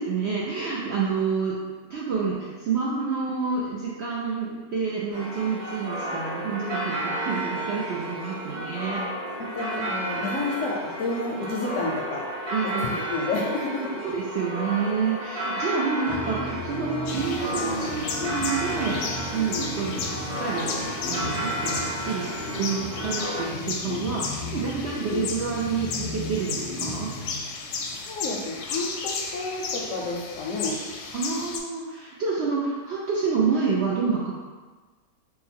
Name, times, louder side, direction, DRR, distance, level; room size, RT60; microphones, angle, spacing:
voice 1, 0.0-1.5 1.9-9.0 12.5-13.1 14.0-20.0 20.4-20.7 21.0-22.3 22.6-27.1 31.1-34.3, right 5 dB, 70° right, -5 dB, 0.6 m, -28 dB
sound 1, 5.1-23.4, right 1 dB, 40° right, 1.6 m, -32 dB
voice 2, 9.4-12.2 12.8-13.9 28.0-30.8, left 3 dB, 70° left, -2 dB, 0.8 m, -30 dB
sound 2, 16.1-28.0, left 1 dB, 40° left, 0.6 m, -35 dB
sound 3, 17.1-31.6, left 4 dB, 85° left, 1.1 m, -34 dB
3.7 x 2.2 x 4.3 m, 1.3 s
omnidirectional pair, 1.6 m